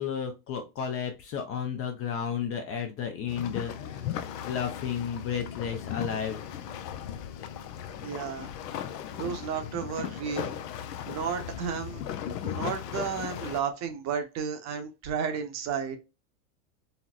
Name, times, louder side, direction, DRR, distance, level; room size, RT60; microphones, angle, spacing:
voice 1, 0.0-4.1 4.5-6.4, left 7 dB, 30° left, 0.4 m, -33 dB
sound 1, 3.3-13.6, left 9 dB, 75° left, 0.6 m, -37 dB
voice 2, 8.0-8.5 9.2-10.6 11.1-12.0 12.4-16.0, right 7 dB, 35° right, 0.7 m, -32 dB
4.1 x 2.0 x 2.4 m
hypercardioid pair, 105°, 48 cm